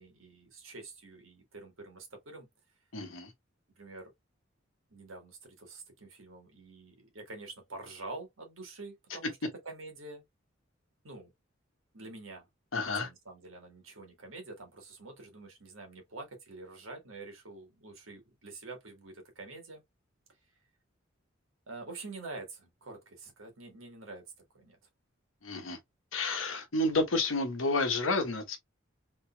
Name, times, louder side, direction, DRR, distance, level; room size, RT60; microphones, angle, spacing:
voice 1, 0.0-2.5 3.8-4.1 4.9-10.2 11.0-11.3 11.9-12.5 12.8-19.8 21.7-24.8, right 3 dB, 90° right, 1.7 m, -47 dB
voice 2, 2.9-3.3 12.7-13.1 25.4-25.8 26.1-28.6, left 2 dB, 80° left, 1.1 m, -30 dB
3.7 x 3.4 x 2.3 m
head